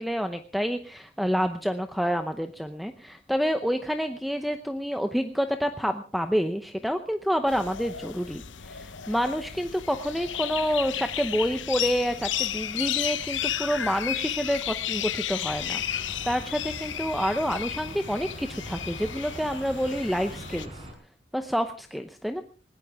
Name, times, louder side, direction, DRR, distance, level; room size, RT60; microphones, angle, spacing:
voice 1, 0.0-20.8 21.3-22.4, equal, ahead, 7 dB, 0.8 m, -28 dB
sound 1, 7.5-20.6, left 10 dB, 90° left, 0.9 m, -33 dB
sound 2, 15.4-20.9, right 1 dB, 30° right, 5.4 m, -43 dB
20.5 x 18.0 x 3.5 m, 0.38 s
head